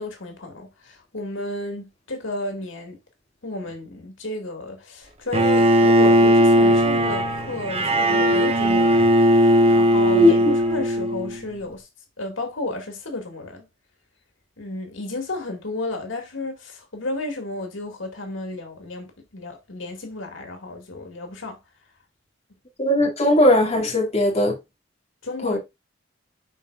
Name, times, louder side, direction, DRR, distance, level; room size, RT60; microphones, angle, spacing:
voice 1, 0.0-3.0 3.4-11.9 12.2-13.7 14.6-21.6 25.2-25.6, left 2 dB, 90° left, 2.2 m, -32 dB
Bowed string instrument, 5.3-11.4, equal, 30° right, 1.0 m, -18 dB
voice 2, 22.8-24.6 25.4-25.6, left 1 dB, 35° left, 2.3 m, -18 dB
11.0 x 4.4 x 2.5 m
head